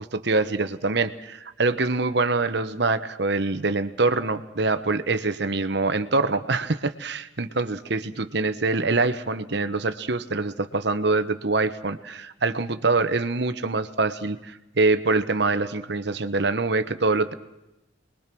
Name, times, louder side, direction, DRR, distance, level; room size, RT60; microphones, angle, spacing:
voice 1, 0.0-17.3, right 3 dB, 60° right, 10 dB, 1.1 m, -24 dB
28.0 x 21.5 x 6.2 m, 0.92 s
head